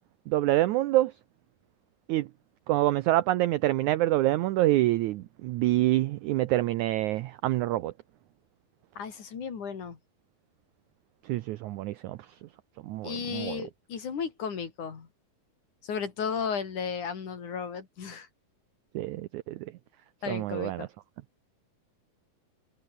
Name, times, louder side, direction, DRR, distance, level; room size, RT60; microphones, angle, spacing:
voice 1, 0.3-1.1 2.1-2.3 2.7-7.9 11.3-12.2 12.8-13.6 19.0-19.6 20.3-20.9, right 16 dB, 85° right, 1.7 m, -26 dB
voice 2, 9.0-10.0 13.0-15.1 15.8-18.3 20.2-20.9, left 6 dB, 55° left, 4.6 m, -34 dB
omnidirectional pair, 4.2 m